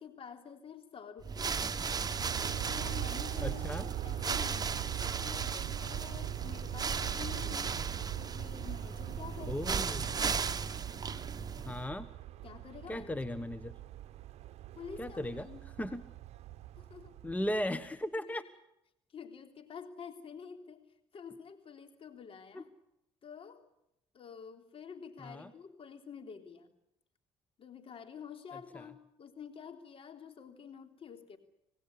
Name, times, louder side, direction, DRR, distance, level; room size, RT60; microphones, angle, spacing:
voice 1, 0.0-1.6 2.3-3.8 4.0-4.9 5.2-7.8 8.2-9.9 12.4-13.2 14.8-15.6 16.8-17.2 18.2-18.4 19.1-20.8 21.1-22.7 23.2-23.6 24.1-26.7 27.6-31.4, left 7 dB, 50° left, 7 dB, 3.5 m, -49 dB
sound 1, 1.2-11.9, right 5 dB, 35° right, 1.3 m, -36 dB
Aircraft, 1.9-17.9, right 14 dB, 65° right, 0.8 m, -42 dB
voice 2, 3.4-3.9 9.5-10.1 11.6-12.1 12.9-13.7 15.0-15.5 15.8-16.0 17.2-18.4 22.5-22.6 25.2-25.5 28.7-28.8, left 1 dB, 10° left, 13 dB, 1.2 m, -36 dB
26.5 x 18.0 x 8.4 m, 0.82 s
supercardioid pair, 65°, 12 cm